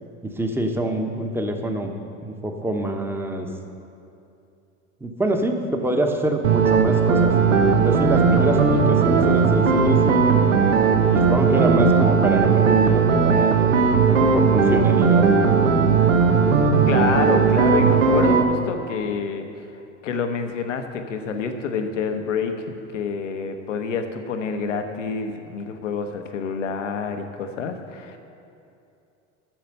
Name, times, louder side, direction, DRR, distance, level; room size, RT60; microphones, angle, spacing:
voice 1, 0.2-1.9 2.2-3.5 5.0-7.3 7.8-10.6 11.1-15.4, right 1 dB, 5° right, 4 dB, 1.0 m, -26 dB
sound 1, 6.4-18.4, right 5 dB, 90° right, 0.9 m, -17 dB
voice 2, 16.9-19.7 20.0-28.2, left 5 dB, 85° left, 7 dB, 0.9 m, -27 dB
8.9 x 6.7 x 6.6 m, 2.7 s
hypercardioid pair, 80°, 36 cm